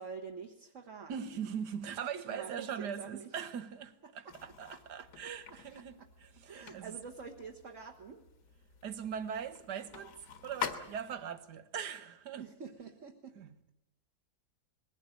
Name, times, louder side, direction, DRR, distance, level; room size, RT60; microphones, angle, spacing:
voice 1, 0.0-1.5 2.1-3.3 4.0-4.4 4.7-4.8 5.5-5.6 6.0-6.1 6.5-8.2 12.4-13.3, right 5 dB, 50° right, 1.7 m, -47 dB
voice 2, 1.1-7.0 8.8-12.5 13.4-13.6, right 7 dB, 90° right, 1.7 m, -41 dB
sound 1, 4.3-11.4, left 7 dB, 70° left, 1.9 m, -46 dB
21.0 x 16.5 x 9.1 m
omnidirectional pair, 1.7 m